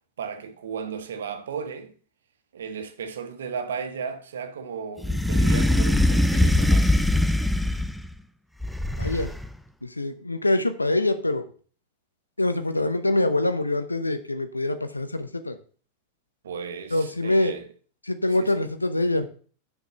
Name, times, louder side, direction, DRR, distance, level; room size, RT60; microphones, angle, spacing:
voice 1, 0.2-1.9 2.5-7.2 12.8-12.9 16.4-17.7 18.4-18.6, right 6 dB, 65° right, 1.1 m, -35 dB
sound 1, 5.0-8.1 8.6-9.5, left 1 dB, ahead, 0.5 m, -21 dB
voice 2, 9.0-9.3 9.8-11.5 12.4-15.6 16.9-17.5 18.1-19.3, left 2 dB, 85° left, 0.8 m, -24 dB
6.5 x 5.2 x 6.8 m
figure-of-eight pair, 90°, 0 cm